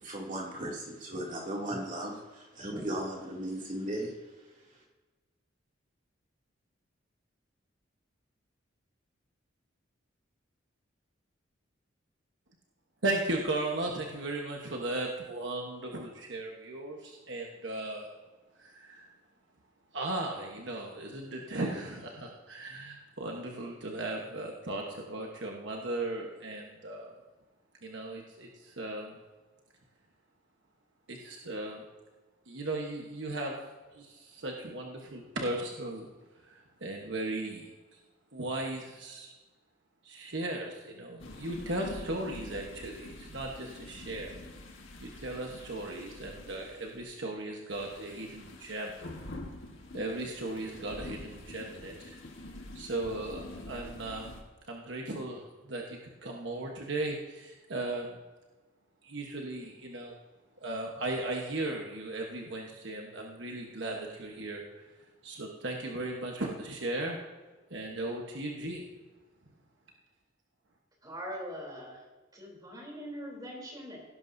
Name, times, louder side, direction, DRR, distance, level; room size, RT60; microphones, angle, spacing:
voice 1, 0.0-4.1, right 1 dB, 40° right, -3 dB, 2.6 m, -36 dB
voice 2, 13.0-18.1 18.5-19.1 19.9-27.1 27.8-29.2 31.1-31.8 32.5-33.6 33.9-36.1 36.4-38.0 38.3-39.3 40.0-44.3 45.0-49.0 49.9-52.2 52.7-54.3 54.7-58.2 59.0-60.2 60.6-64.6 65.2-67.2 67.7-68.8, right 2 dB, 70° right, 0 dB, 1.2 m, -37 dB
sound 1, 41.2-47.2 47.7-54.4, left 1 dB, 85° left, 1.6 m, -46 dB
voice 3, 71.0-72.0 72.3-74.0, equal, 20° right, -1 dB, 3.4 m, -42 dB
17.5 x 11.0 x 2.7 m, 1.3 s
head